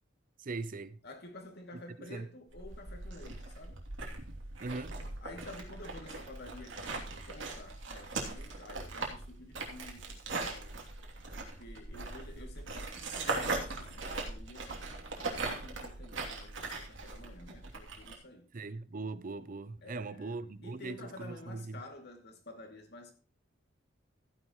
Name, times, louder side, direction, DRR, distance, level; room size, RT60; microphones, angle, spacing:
voice 1, 0.4-1.0 2.0-2.3 4.6-5.0 18.5-21.8, right 3 dB, 45° right, 0.6 m, -40 dB
voice 2, 1.0-3.8 5.2-10.8 11.4-18.5 19.8-23.1, left 1 dB, 55° left, 2.5 m, -51 dB
sound 1, 2.5-18.1, right 3 dB, 75° right, 3.0 m, -40 dB
14.5 x 10.0 x 3.1 m
head